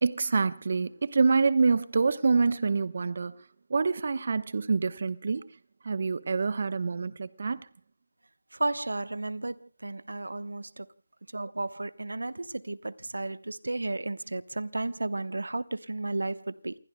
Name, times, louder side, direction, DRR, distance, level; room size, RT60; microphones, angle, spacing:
voice 1, 0.0-3.4 3.7-5.4 5.8-7.6, right 4 dB, 55° right, 1.0 m, -26 dB
voice 2, 8.5-10.9 11.3-16.7, right 2 dB, 80° right, 1.0 m, -33 dB
28.5 x 21.0 x 2.2 m
figure-of-eight pair, 160°, 0 cm